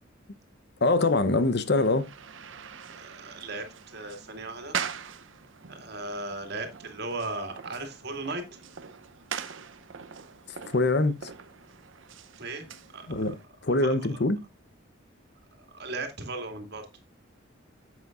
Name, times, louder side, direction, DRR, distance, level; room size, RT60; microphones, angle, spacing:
voice 1, 0.8-2.1 10.7-11.2 13.1-13.3 13.6-14.4, left 2 dB, 55° left, 0.9 m, -23 dB
sound 1, 1.0-13.5, right 7 dB, 75° right, 0.7 m, -42 dB
voice 2, 2.9-4.8 5.7-8.4 12.4-12.7 12.9-13.1 13.7-14.3 15.6-16.9, right 2 dB, 55° right, 2.2 m, -37 dB
10.5 x 8.1 x 2.5 m
head